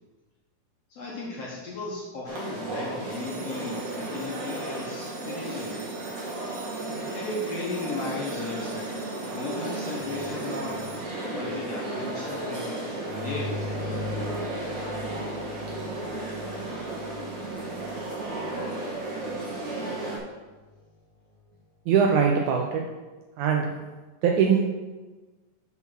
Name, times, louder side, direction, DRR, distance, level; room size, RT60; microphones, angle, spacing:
voice 1, 0.9-6.0 7.1-8.9 9.3-12.8 13.1-13.6, left 3 dB, 65° left, -4 dB, 1.6 m, -36 dB
sound 1, 2.3-20.2, right 2 dB, 50° right, 1.3 m, -34 dB
sound 2, 3.1-11.8, right 3 dB, 70° right, 1.0 m, -48 dB
sound 3, 10.0-20.2 20.6-20.7 21.4-21.5, left 3 dB, 35° right, 2.3 m, -41 dB
voice 2, 21.9-22.8 23.4-23.7 24.2-24.6, right 6 dB, 85° right, 1 dB, 1.8 m, -21 dB
6.1 x 5.6 x 5.8 m, 1.2 s
omnidirectional pair, 4.0 m